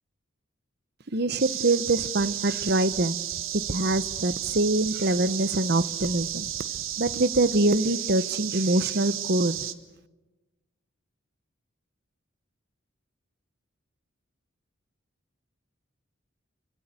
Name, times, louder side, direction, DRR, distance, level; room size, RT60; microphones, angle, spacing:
voice 1, 1.1-3.2 3.5-6.5 7.0-9.6, right 2 dB, 50° right, 16 dB, 1.0 m, -24 dB
sound 1, 1.4-9.7, right 11 dB, 85° right, 1.5 m, -33 dB
27.0 x 25.0 x 8.4 m, 1.1 s
head